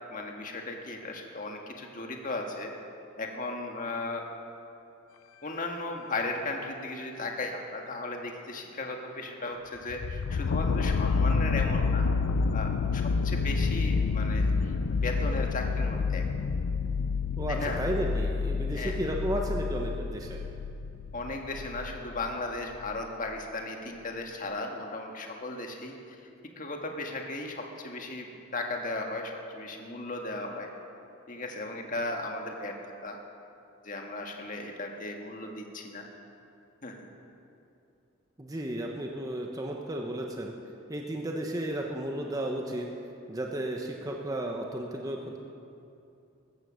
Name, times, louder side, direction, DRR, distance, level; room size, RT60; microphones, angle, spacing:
voice 1, 0.1-2.7 3.2-4.2 5.4-12.1 12.5-16.2 17.5-17.8 18.7-19.0 21.1-25.9 26.6-30.7 31.3-33.2 33.8-36.1 36.8-37.1, left 2 dB, 40° left, 2 dB, 1.7 m, -36 dB
sound 1, 9.9-22.3 22.9-23.0, left 4 dB, 80° left, 0.4 m, -28 dB
voice 2, 17.4-20.4 38.4-40.5 40.9-42.9 43.3-45.4, right 1 dB, 15° right, 1 dB, 0.9 m, -33 dB
14.5 x 14.0 x 6.4 m, 2.7 s
head